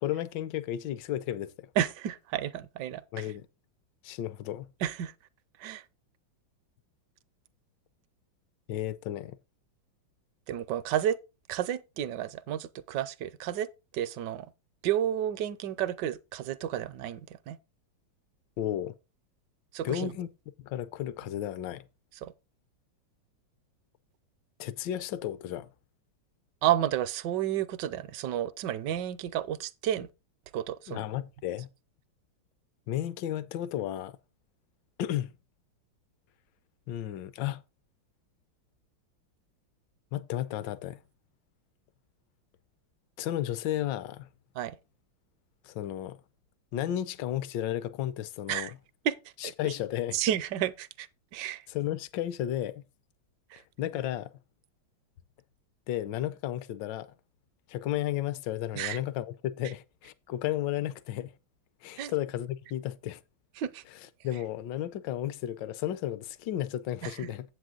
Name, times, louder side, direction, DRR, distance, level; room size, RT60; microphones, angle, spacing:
voice 1, 0.0-1.7 3.1-3.5 4.0-4.7 8.7-9.4 18.6-18.9 19.8-20.3 20.6-21.8 24.6-25.7 30.9-31.7 32.9-34.1 35.0-35.3 36.9-37.6 40.1-41.0 43.2-44.3 45.6-46.2 46.7-48.7 49.4-50.2 51.7-52.8 53.8-54.3 55.9-57.1 57.7-61.3 61.8-63.2 64.2-67.4, left 12 dB, 70° left, 1.2 m, -33 dB
voice 2, 1.8-3.3 4.8-5.1 5.6-5.8 10.5-11.2 11.5-13.7 13.9-14.5 14.8-17.6 19.7-20.1 22.2-22.3 26.6-30.1 30.5-31.0 44.6-44.8 48.5-48.7 49.0-49.2 49.4-49.7 50.1-51.6 53.5-53.6 58.7-59.0 62.0-62.1 63.6-63.8 67.0-67.3, right 11 dB, 70° right, 1.1 m, -31 dB
8.0 x 7.8 x 3.8 m
omnidirectional pair, 2.3 m